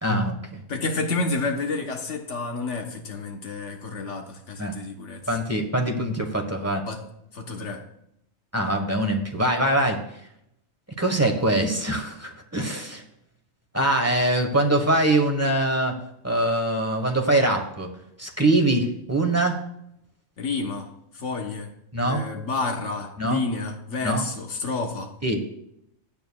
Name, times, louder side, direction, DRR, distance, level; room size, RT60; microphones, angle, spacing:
voice 1, 0.0-0.6 4.6-4.7 5.3-6.8 8.5-10.0 11.0-13.0 13.7-15.9 16.2-17.9 18.2-19.6 21.9-22.3 23.2-23.4 24.0-24.3 25.2-25.4, right 1 dB, 15° right, 1.1 m, -23 dB
voice 2, 0.7-5.2 6.9-7.0 7.3-7.9 20.4-21.7 22.0-25.1, left 3 dB, 85° left, 1.4 m, -30 dB
16.0 x 9.0 x 2.3 m
omnidirectional pair, 1.2 m